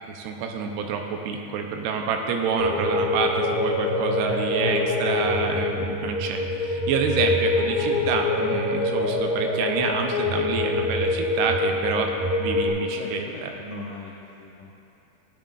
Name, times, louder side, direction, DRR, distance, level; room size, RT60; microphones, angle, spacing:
voice 1, 0.1-12.1 12.4-13.5, right 5 dB, 90° right, 3 dB, 2.7 m, -27 dB
sound 1, 2.6-12.7, left 2 dB, 70° right, 0.4 m, -25 dB
voice 2, 4.2-5.3 12.9-14.7, left 3 dB, 80° left, -4 dB, 1.8 m, -39 dB
14.0 x 9.0 x 2.4 m, 2.7 s
omnidirectional pair, 4.7 m